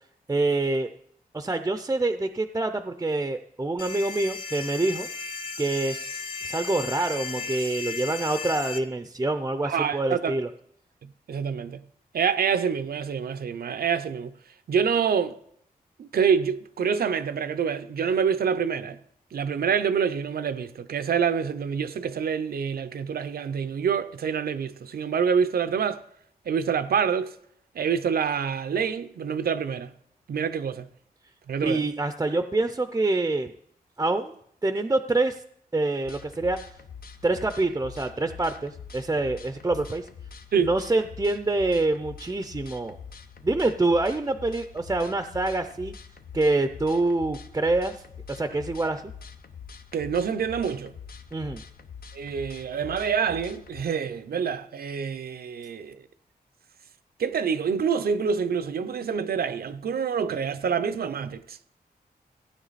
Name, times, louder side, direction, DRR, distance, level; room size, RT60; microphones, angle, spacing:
voice 1, 0.3-0.9 1.3-5.1 5.6-10.5 31.6-33.5 34.0-34.3 34.6-35.4 35.7-36.6 37.2-40.1 40.6-43.0 43.4-45.9 46.3-48.0 48.3-49.0 51.3-51.6, right 2 dB, 20° right, 0.5 m, -26 dB
sound 1, 3.8-8.8, left 4 dB, 35° left, 0.9 m, -35 dB
voice 2, 9.6-10.3 11.3-11.8 12.1-14.3 14.7-15.4 16.0-19.0 19.3-26.0 26.5-27.3 27.7-29.9 30.3-30.9 31.5-31.8 40.5-40.7 49.9-50.9 52.1-56.0 57.2-61.6, right 7 dB, 85° right, 0.7 m, -26 dB
sound 2, 36.0-53.8, left 6 dB, 70° left, 0.9 m, -44 dB
16.0 x 9.5 x 4.1 m
wide cardioid pair, 140°, 16 cm